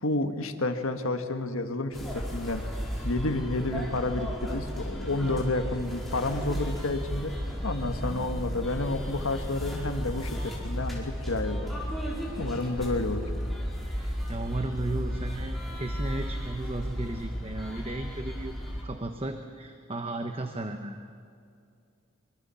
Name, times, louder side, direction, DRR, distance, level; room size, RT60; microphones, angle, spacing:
voice 1, 0.0-2.6 3.0-7.3 7.6-11.8 12.4-13.3, left 2 dB, 80° left, 6 dB, 1.6 m, -30 dB
sound 1, 1.9-18.8, equal, ahead, 4.7 m, -34 dB
voice 2, 13.9-18.5 18.8-21.0, right 2 dB, 25° right, 6 dB, 1.1 m, -35 dB
24.5 x 24.5 x 7.1 m, 2.4 s
head